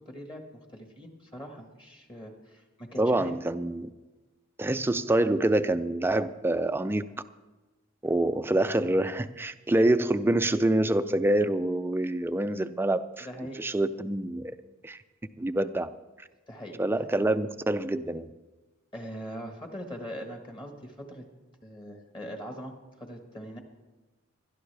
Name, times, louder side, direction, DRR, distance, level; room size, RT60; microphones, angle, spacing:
voice 1, 0.0-3.3 13.2-13.6 16.5-16.8 18.9-21.2 21.6-23.6, equal, 20° left, 3 dB, 1.3 m, -41 dB
voice 2, 3.0-3.9 4.6-7.0 8.0-13.3 13.6-14.5 14.8-15.0 15.4-15.9 16.8-18.3, right 1 dB, 10° right, 11 dB, 0.4 m, -26 dB
20.0 x 12.5 x 3.3 m, 1.2 s
head